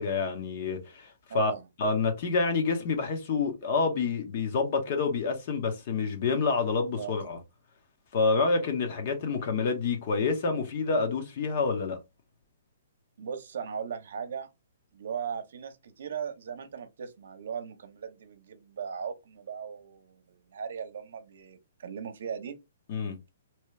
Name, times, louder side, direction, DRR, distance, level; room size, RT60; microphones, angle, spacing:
voice 1, 0.0-1.5 1.8-7.4 8.1-12.0 22.9-23.2, left 4 dB, 35° left, 1.0 m, -28 dB
voice 2, 1.3-1.7 7.0-7.2 13.2-14.5 14.9-22.6, right 7 dB, 60° right, 0.8 m, -38 dB
3.0 x 2.9 x 3.2 m
hypercardioid pair, 170°, 0 cm